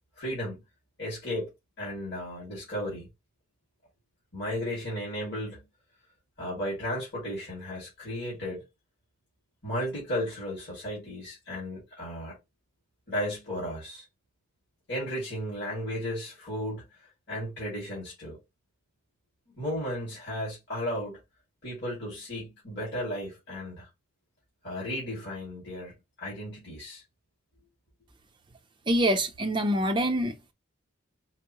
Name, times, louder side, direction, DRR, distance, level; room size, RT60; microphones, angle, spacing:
voice 1, 0.2-0.6 1.0-1.5 1.8-3.1 4.3-5.7 6.4-8.6 9.6-12.4 13.1-14.0 14.9-16.9 17.3-18.4 19.6-21.2 21.6-23.9 24.6-27.0, equal, 55° left, 2.1 m, -34 dB
voice 2, 28.9-30.5, equal, 25° right, 0.5 m, -25 dB
4.4 x 2.0 x 2.9 m
head